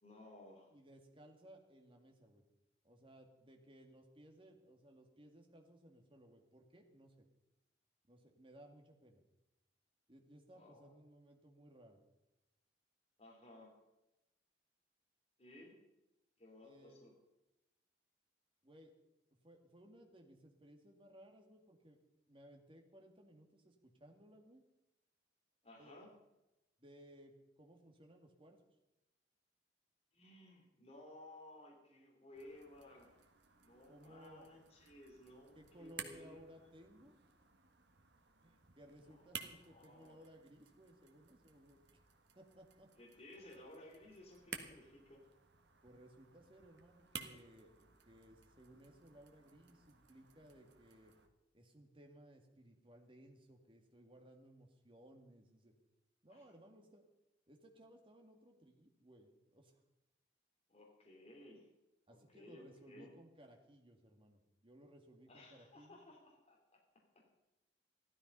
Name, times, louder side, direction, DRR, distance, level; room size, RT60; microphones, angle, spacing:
voice 1, 0.0-0.7 10.5-10.9 13.2-13.7 15.4-15.8 16.4-17.1 25.6-26.1 30.1-33.2 33.6-36.4 39.0-40.2 43.0-45.2 56.3-56.5 60.7-61.7 62.3-63.1 65.3-66.8, left 1 dB, 35° left, -1 dB, 3.1 m, -58 dB
voice 2, 0.7-2.4 2.8-7.3 8.1-9.2 10.1-12.0 16.6-17.0 18.6-18.9 19.4-22.0 22.3-24.6 25.8-26.0 26.8-28.6 33.9-34.5 35.5-37.2 38.4-41.8 42.3-42.9 45.8-51.1 51.5-55.7 56.2-57.0 57.5-59.8 62.1-66.0, equal, 30° right, 3 dB, 2.1 m, -61 dB
sound 1, 32.3-51.3, right 6 dB, 65° right, 1.5 m, -56 dB
15.0 x 13.0 x 5.5 m, 0.96 s
head